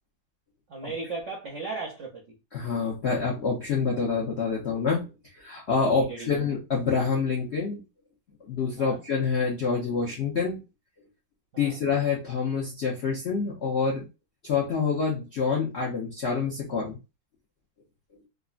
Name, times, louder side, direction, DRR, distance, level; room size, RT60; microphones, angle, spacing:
voice 1, 0.7-2.4 6.0-6.4 8.8-9.0 11.5-11.8, right 3 dB, 70° right, 0.6 m, -36 dB
voice 2, 2.5-7.8 8.4-10.6 11.6-14.1 14.4-17.0, left 5 dB, 70° left, 0.6 m, -27 dB
3.6 x 2.0 x 2.3 m
omnidirectional pair, 2.1 m